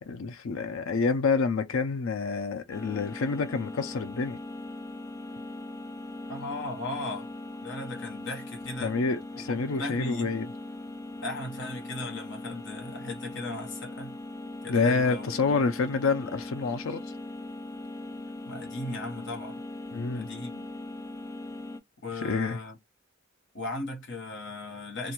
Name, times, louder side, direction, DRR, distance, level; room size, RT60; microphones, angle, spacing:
voice 1, 0.0-4.4 8.8-10.5 14.7-17.0 19.9-20.3 22.2-22.6, left 4 dB, 80° left, 0.5 m, -28 dB
sound 1, 2.7-21.8, left 2 dB, 15° left, 0.3 m, -40 dB
voice 2, 6.3-7.3 7.6-9.0 9.3-9.5 9.8-10.3 11.2-14.2 14.6-15.6 18.5-19.6 20.1-20.6 22.0-22.8 23.5-25.1, left 2 dB, 60° left, 1.1 m, -37 dB
2.6 x 2.2 x 2.9 m
head